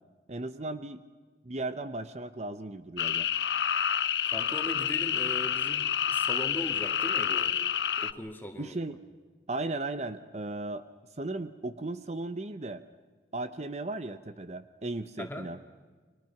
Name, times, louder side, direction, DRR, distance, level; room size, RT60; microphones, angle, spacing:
voice 1, 0.3-1.0 1.4-3.3 8.6-9.0 9.5-10.8 11.2-12.8 13.3-15.6, right 2 dB, 40° right, 11 dB, 0.8 m, -36 dB
sound 1, 3.0-8.1, left 9 dB, 75° left, 0.8 m, -28 dB
voice 2, 4.3-7.5 8.0-8.8 15.2-15.5, left 1 dB, 10° left, 4 dB, 2.3 m, -39 dB
30.0 x 23.0 x 5.9 m, 1.4 s
head